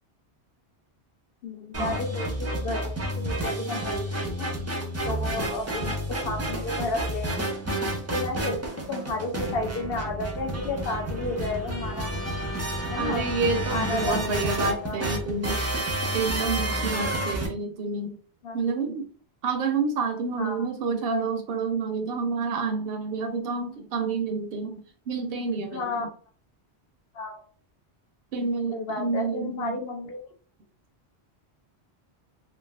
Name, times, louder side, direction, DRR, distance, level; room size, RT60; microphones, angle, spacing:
voice 1, 1.4-4.5 5.0-6.0 6.2-7.6 8.1-8.6 8.9-12.1 12.9-13.3 13.7-15.0 18.4-18.6 20.4-20.7 25.7-26.0 27.1-27.4 28.7-30.2, left 2 dB, 65° left, 3 dB, 0.8 m, -32 dB
sound 1, 1.7-17.5, right 1 dB, 20° right, 0.4 m, -30 dB
voice 2, 13.0-15.6 16.1-18.2 18.5-19.1 19.4-26.1 28.3-29.8, right 4 dB, 65° right, 6 dB, 0.7 m, -29 dB
3.2 x 2.5 x 2.2 m, 0.42 s
omnidirectional pair, 1.1 m